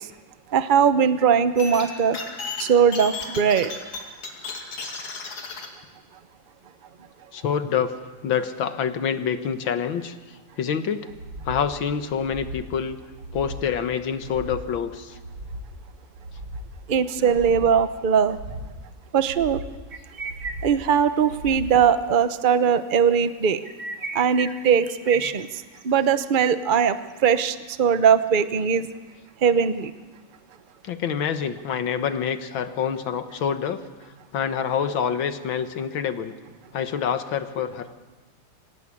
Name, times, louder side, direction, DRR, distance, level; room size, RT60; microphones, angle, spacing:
voice 1, 0.5-2.2 2.6-3.7 16.9-18.4 19.1-19.6 20.6-23.6 24.1-25.5 25.8-27.0 27.2-28.9 29.4-29.9, right 7 dB, 70° right, 11 dB, 0.4 m, -20 dB
sound 1, 1.6-5.7, left 4 dB, 80° left, 3.4 m, -35 dB
voice 2, 7.3-7.9 8.2-10.2 10.6-11.1 11.5-13.0 13.3-15.2 17.2-17.7 25.2-25.3 30.8-33.8 34.3-36.3 36.7-37.9, left 7 dB, 65° left, 9 dB, 2.0 m, -27 dB
sound 2, 11.1-11.6 12.1-12.6 13.1-13.7 14.1-14.7 15.1-15.7 16.1-16.7 17.1-17.7 18.1-18.7 19.1-19.7 20.1-20.7 21.1-21.7 22.2-22.3, equal, 85° right, 5.7 m, -38 dB
sound 3, 19.9-21.0 21.3-21.5 21.9-22.0 23.5-25.8, right 3 dB, 35° right, 1.9 m, -35 dB
25.5 x 17.0 x 8.5 m, 1.2 s
omnidirectional pair, 2.4 m